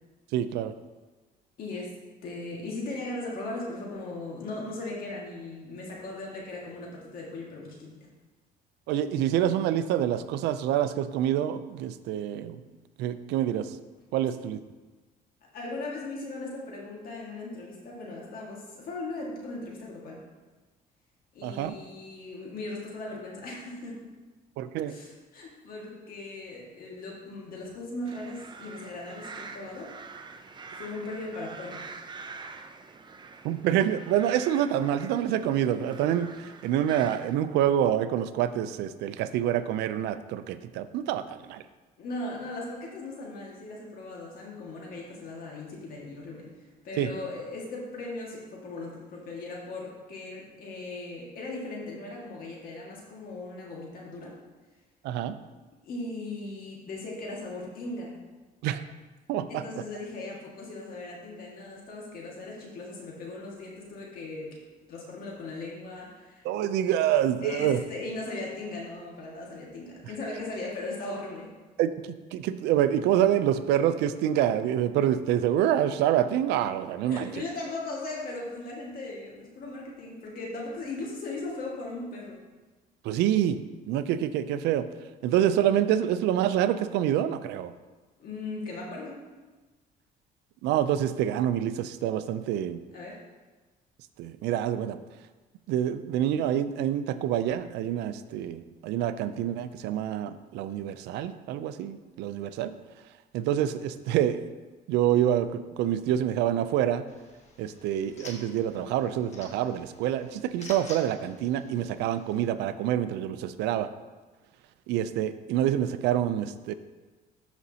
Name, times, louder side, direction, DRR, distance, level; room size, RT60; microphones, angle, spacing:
voice 1, 0.3-0.7 8.9-12.6 13.0-13.8 14.1-14.6 21.4-21.7 24.6-25.0 33.4-41.6 47.0-47.1 55.0-55.4 58.6-58.8 59.3-59.6 66.4-67.8 71.8-77.4 83.0-83.6 83.9-84.9 85.2-87.7 90.6-92.8 94.2-95.0 95.7-102.7 103.3-104.4 104.9-107.1 107.6-113.9 114.9-116.7, right 11 dB, 85° right, 12 dB, 0.5 m, -27 dB
voice 2, 1.6-1.9 2.2-8.0 15.5-20.2 21.3-24.1 24.9-30.0 30.7-31.8 42.0-46.5 46.8-54.4 55.8-58.1 59.5-64.6 64.9-66.5 67.4-71.5 77.0-82.4 88.2-89.2 92.9-93.2, left 2 dB, 60° left, -3 dB, 1.9 m, -38 dB
sound 1, 28.0-37.4, right 4 dB, 25° right, 0.6 m, -45 dB
sound 2, 107.1-112.5, left 2 dB, 40° left, 1.5 m, -49 dB
13.0 x 5.2 x 2.8 m, 1.3 s
cardioid pair, 110°, 17 cm